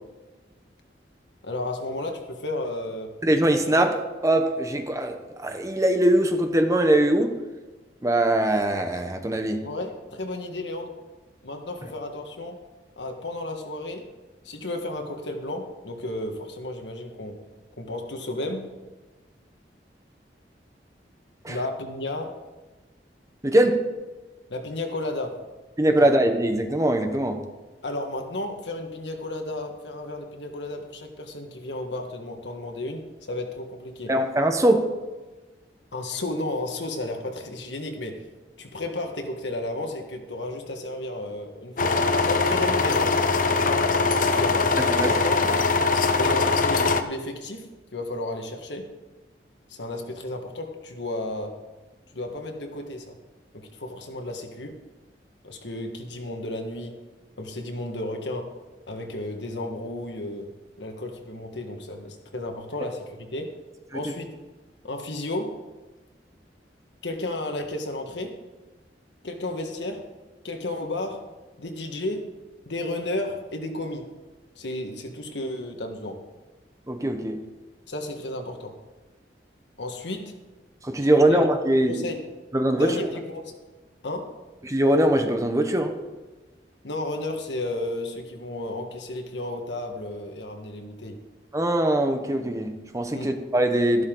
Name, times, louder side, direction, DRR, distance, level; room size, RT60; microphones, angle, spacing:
voice 1, 1.4-3.1 9.6-10.9 11.4-12.6 13.0-14.1 14.4-17.4 17.8-18.7 21.5-22.4 24.5-25.4 26.0-26.1 27.8-34.1 35.9-38.2 38.6-43.2 43.5-43.9 44.3-44.7 45.0-45.4 46.1-48.9 49.7-51.6 52.1-53.2 53.7-54.8 55.4-57.0 57.4-58.5 58.9-60.5 60.8-63.5 63.9-64.3 64.8-65.6 67.0-68.4 69.2-70.1 70.4-71.3 71.6-72.3 72.7-74.1 74.6-76.2 77.9-78.7 79.8-80.4 81.2-81.5 81.9-82.2 82.7-83.5 84.0-84.3 86.8-91.2 93.1-93.3, left 2 dB, 90° left, 4 dB, 1.6 m, -33 dB
voice 2, 3.2-7.4 8.0-9.6 21.4-21.6 23.4-23.8 25.8-27.4 34.1-34.9 44.9-45.1 63.9-64.0 76.9-77.4 80.8-82.1 82.5-82.9 84.6-85.9 91.5-94.1, right 1 dB, 20° right, 6 dB, 1.0 m, -22 dB
sound 1, 41.8-47.0, left 3 dB, 50° left, 0.7 m, -22 dB
13.0 x 12.0 x 3.9 m, 1.2 s
head